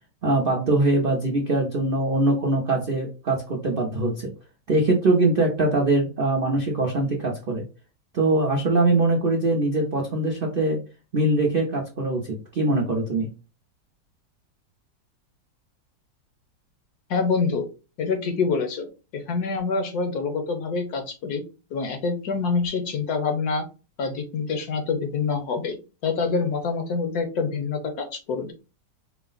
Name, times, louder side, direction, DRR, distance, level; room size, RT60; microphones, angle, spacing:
voice 1, 0.2-4.3 4.7-7.6 8.1-10.8 11.1-13.3, right 2 dB, 75° right, 0 dB, 0.5 m, -22 dB
voice 2, 17.1-17.7 18.0-18.9 19.1-21.4 21.7-23.7 24.0-25.8 26.0-28.5, left 4 dB, 65° left, 6 dB, 1.2 m, -26 dB
4.6 x 2.0 x 3.8 m, 0.31 s
omnidirectional pair, 2.0 m